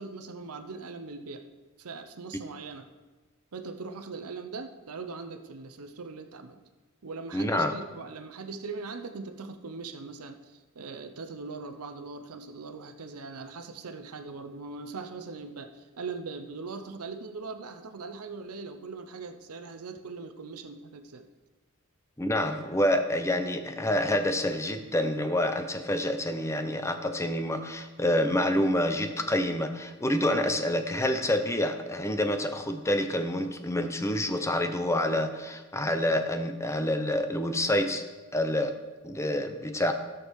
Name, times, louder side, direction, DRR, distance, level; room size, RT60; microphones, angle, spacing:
voice 1, 0.0-1.4 1.8-2.9 3.5-6.6 7.0-21.3, right 4 dB, 85° right, 8 dB, 0.8 m, -40 dB
voice 2, 7.3-7.7 22.2-38.0 38.3-38.7 39.0-39.9, left 1 dB, 15° left, 7 dB, 0.7 m, -27 dB
16.5 x 6.3 x 4.7 m, 1.2 s
head